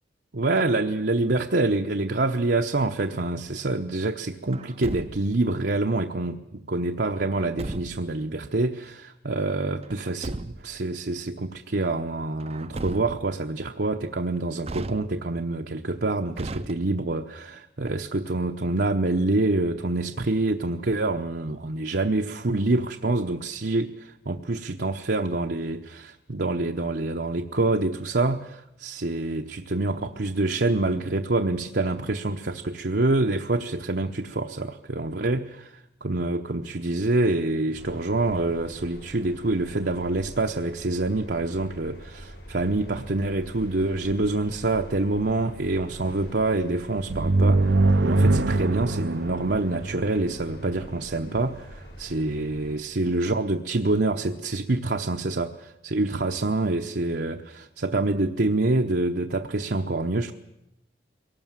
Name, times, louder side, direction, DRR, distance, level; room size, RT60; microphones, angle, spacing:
voice 1, 0.3-10.4 10.6-60.3, right 2 dB, 65° right, 3 dB, 0.9 m, -26 dB
Truck, 4.5-5.5 7.3-8.2 9.8-10.8 12.4-13.4 14.6-15.5 16.3-17.2, right 2 dB, 35° right, 0.7 m, -36 dB
sound 1, 37.8-52.8, equal, 65° left, 4.4 m, -44 dB
sound 2, 47.1-50.7, right 2 dB, 80° right, 0.8 m, -22 dB
23.0 x 18.5 x 7.4 m, 0.87 s
head